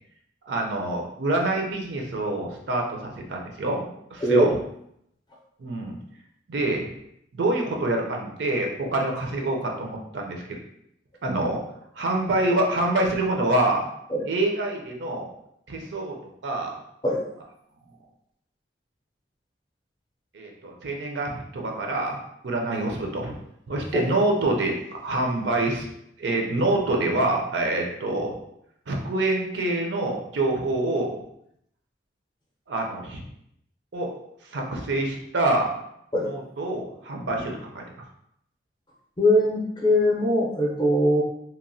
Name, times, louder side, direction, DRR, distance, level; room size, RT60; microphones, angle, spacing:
voice 1, 0.5-4.5 5.6-6.0 6.5-6.9 7.3-10.6 11.2-11.6 12.0-13.9 14.3-15.3 15.7-16.2 16.4-16.8 20.3-22.2 22.4-23.3 23.7-25.9 26.2-28.4 28.9-31.1 32.7-33.2 33.9-34.1 34.5-35.7 36.2-37.8, right 2 dB, 75° right, 1 dB, 0.5 m, -26 dB
voice 2, 4.2-4.5 14.1-14.2 17.0-17.2 23.9-24.0 36.1-36.3 39.2-41.2, equal, 25° left, -3 dB, 0.5 m, -21 dB
2.9 x 2.1 x 2.6 m, 0.75 s
head